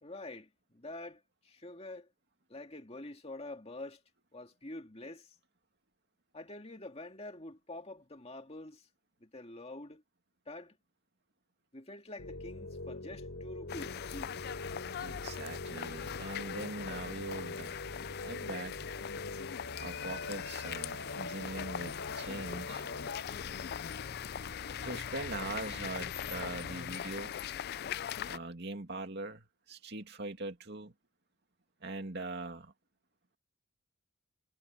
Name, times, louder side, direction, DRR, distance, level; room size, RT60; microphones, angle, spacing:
voice 1, 0.0-2.1 2.5-4.0 4.3-5.3 6.3-8.9 9.2-10.0 10.5-10.8 11.7-14.5, left 2 dB, 30° left, 2.2 m, -46 dB
sound 1, 12.2-27.0, left 2 dB, 70° left, 3.4 m, -44 dB
sound 2, 13.7-28.4, left 9 dB, 50° left, 0.3 m, -41 dB
voice 2, 15.0-17.8 18.2-18.9 19.8-22.8 24.8-27.4 28.2-30.9 31.8-32.7, right 2 dB, 55° right, 2.5 m, -42 dB
head